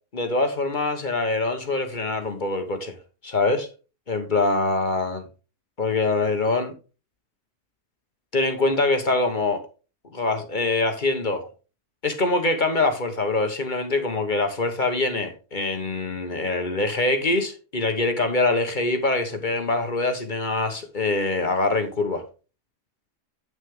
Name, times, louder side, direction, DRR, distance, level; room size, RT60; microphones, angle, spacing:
voice 1, 0.1-2.9 3.2-3.7 4.1-5.2 5.8-6.7 8.3-9.6 10.1-11.5 12.0-22.2, left 2 dB, 35° left, 1.2 m, -24 dB
9.1 x 6.2 x 3.7 m
omnidirectional pair, 1.7 m